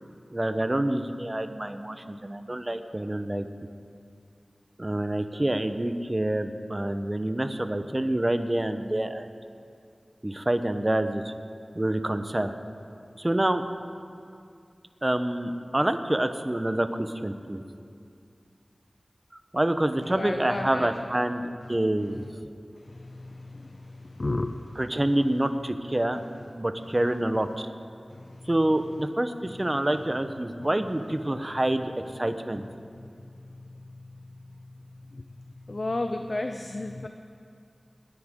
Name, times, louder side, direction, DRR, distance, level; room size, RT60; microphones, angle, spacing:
voice 1, 0.3-3.4 4.8-9.3 10.2-11.3 11.7-12.5 13.2-13.6 15.0-17.6 19.5-22.3 24.8-26.2 26.6-27.7 28.5-32.6, right 1 dB, 30° right, 8 dB, 0.9 m, -27 dB
voice 2, 20.1-20.9 22.1-22.3 22.9-25.3 26.8-26.9 28.1-28.5 33.9-34.0 35.1-35.2 35.7-37.1, left 2 dB, 55° left, 6 dB, 0.6 m, -33 dB
29.0 x 9.9 x 3.8 m, 2.4 s
wide cardioid pair, 45°, 0 cm